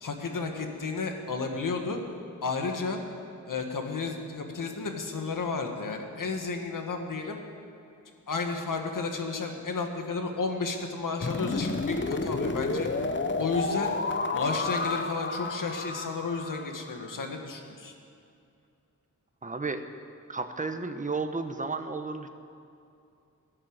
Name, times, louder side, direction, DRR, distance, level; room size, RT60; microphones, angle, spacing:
voice 1, 0.0-2.0 2.4-3.0 3.5-7.4 8.3-12.9 13.4-13.9 14.3-17.9, left 4 dB, 80° left, 4 dB, 1.8 m, -32 dB
sound 1, 11.2-17.1, left 3 dB, 35° left, 0.8 m, -31 dB
voice 2, 19.4-19.8 20.3-22.3, right 3 dB, 25° right, 8 dB, 1.0 m, -32 dB
17.0 x 10.5 x 7.9 m, 2.6 s
wide cardioid pair, 90°, 32 cm